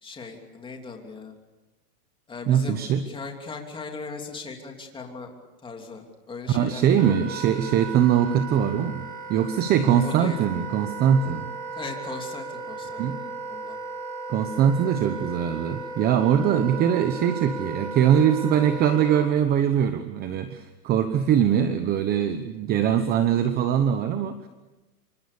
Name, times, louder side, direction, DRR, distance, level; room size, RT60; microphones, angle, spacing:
voice 1, 0.0-1.3 2.3-5.3 5.6-7.3 10.0-10.4 11.7-13.0 13.5-13.8, left 4 dB, 10° left, 2 dB, 3.1 m, -38 dB
voice 2, 2.5-3.0 6.5-11.5 13.0-13.2 14.3-24.5, right 9 dB, 20° right, 10 dB, 0.9 m, -22 dB
Wind instrument woodwind instrument, 7.0-19.3, right 3 dB, 75° right, 7.4 m, -36 dB
28.0 x 24.5 x 7.0 m, 1.1 s
hypercardioid pair, 150°, 49 cm